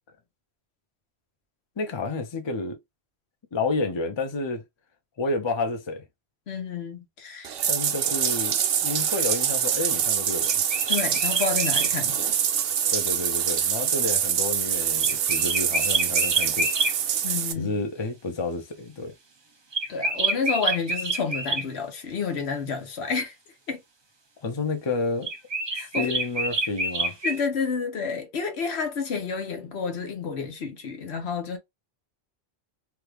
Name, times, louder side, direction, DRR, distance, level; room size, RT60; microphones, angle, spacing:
voice 1, 1.8-2.8 3.5-4.6 5.2-6.0 7.7-10.6 12.9-16.7 17.5-19.1 24.4-25.3 25.7-27.2, left 3 dB, 30° left, 0.6 m, -30 dB
voice 2, 6.5-7.5 10.9-12.4 17.2-17.8 19.9-23.3 23.7-23.8 25.7-26.1 27.2-31.6, left 5 dB, 75° left, 1.2 m, -30 dB
Bathtub (filling or washing), 7.4-17.5, right 9 dB, 65° right, 0.8 m, -25 dB
sound 1, 10.4-11.9 15.0-16.9 19.7-21.7 25.2-27.4, right 3 dB, 30° right, 0.5 m, -27 dB
3.0 x 2.4 x 3.3 m
omnidirectional pair, 1.1 m